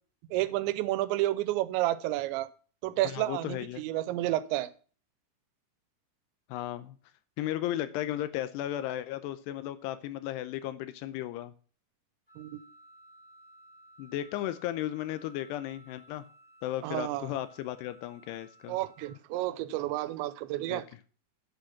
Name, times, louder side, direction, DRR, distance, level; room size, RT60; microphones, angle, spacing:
voice 1, 0.3-2.5 2.8-4.7 12.4-12.6 16.8-17.3 18.7-20.9, right 16 dB, 85° right, 15 dB, 3.0 m, -30 dB
voice 2, 3.0-3.8 6.5-7.0 7.4-11.5 14.0-16.3 16.6-18.8 20.7-20.8, left 13 dB, 80° left, 12 dB, 2.6 m, -35 dB
Wind instrument woodwind instrument, 12.3-19.2, right 1 dB, 5° right, 3.3 m, -57 dB
8.6 x 7.9 x 5.8 m, 0.41 s
omnidirectional pair, 5.1 m